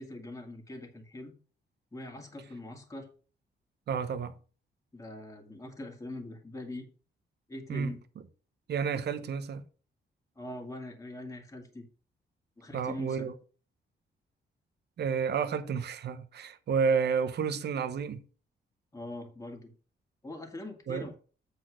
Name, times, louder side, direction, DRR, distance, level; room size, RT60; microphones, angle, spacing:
voice 1, 0.0-1.3 1.9-3.1 4.9-6.9 7.5-8.0 10.4-11.8 12.6-13.3 18.9-19.7 20.2-21.1, left 1 dB, 15° left, 1.9 m, -42 dB
voice 2, 3.9-4.3 7.7-7.9 8.7-9.6 12.7-13.3 15.0-18.2 20.9-21.1, right 6 dB, 65° right, 0.9 m, -30 dB
8.1 x 4.3 x 6.3 m
wide cardioid pair, 135°, 19 cm